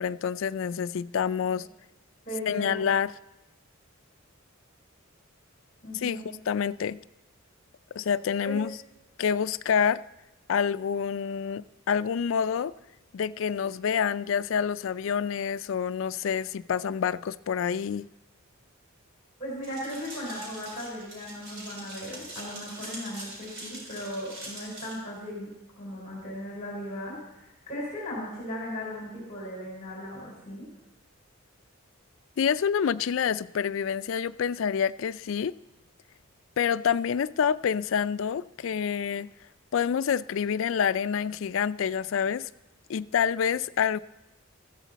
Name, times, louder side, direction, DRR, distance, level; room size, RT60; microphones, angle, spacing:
voice 1, 0.0-1.7 2.5-3.1 5.9-7.0 7.9-8.8 9.2-10.0 10.5-12.7 13.1-18.1 32.4-35.5 36.6-39.3 39.7-42.5 42.9-44.0, left 7 dB, 65° left, 0.3 m, -27 dB
voice 2, 2.3-2.8 5.8-6.3 8.4-8.6 19.4-25.5 25.8-30.7, left 1 dB, 35° left, 3.9 m, -37 dB
sound 1, 19.6-24.9, right 1 dB, 55° right, 4.4 m, -43 dB
14.5 x 13.5 x 4.1 m
head